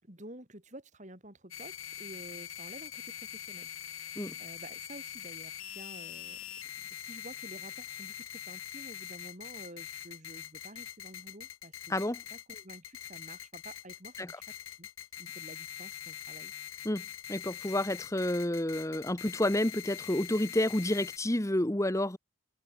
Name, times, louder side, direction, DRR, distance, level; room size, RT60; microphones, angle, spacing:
voice 1, 0.0-6.4 6.9-14.9 15.2-16.5, right 1 dB, 35° right, 4.2 m, -50 dB
sound 1, 1.5-21.2, left 10 dB, 70° left, 3.2 m, -44 dB
voice 2, 17.3-22.2, left 1 dB, 15° left, 1.1 m, -29 dB
head